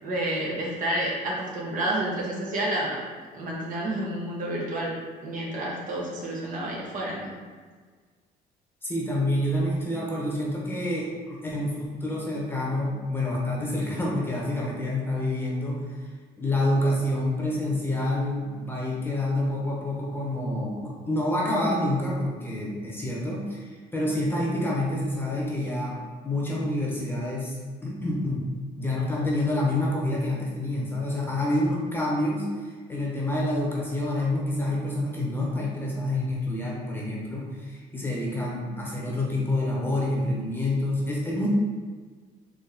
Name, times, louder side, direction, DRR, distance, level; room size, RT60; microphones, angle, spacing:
voice 1, 0.0-3.0 3.3-4.9 5.2-7.3, right 1 dB, 50° right, -4 dB, 1.2 m, -29 dB
voice 2, 8.8-15.8 16.4-25.9 26.2-28.5 28.8-41.5, left 1 dB, 10° left, -4 dB, 1.1 m, -28 dB
4.3 x 3.1 x 3.6 m, 1.5 s
cardioid pair, 110°, 17 cm